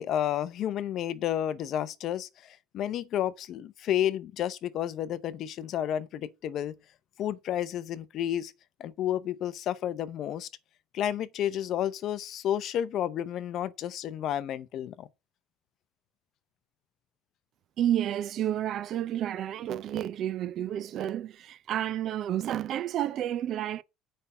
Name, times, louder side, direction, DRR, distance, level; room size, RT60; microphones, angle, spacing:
voice 1, 0.0-6.7 7.2-8.5 8.8-10.5 10.9-15.1, left 11 dB, 45° left, 0.7 m, -31 dB
voice 2, 17.8-23.8, right 11 dB, 45° right, 0.5 m, -30 dB
7.8 x 5.5 x 6.9 m
cardioid pair, 150°, 0 cm